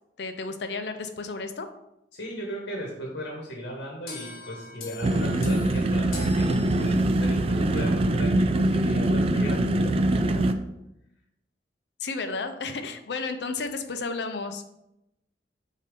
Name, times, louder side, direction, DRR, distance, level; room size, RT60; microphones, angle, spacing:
voice 1, 0.2-1.7 12.0-14.6, left 4 dB, 70° left, 8 dB, 0.6 m, -32 dB
voice 2, 2.1-10.5, equal, 90° left, -1 dB, 1.2 m, -36 dB
sound 1, 4.1-7.4, left 2 dB, 55° left, 1.2 m, -41 dB
sound 2, 5.0-10.5, right 1 dB, 35° right, 0.3 m, -23 dB
6.5 x 2.8 x 5.3 m, 0.87 s
head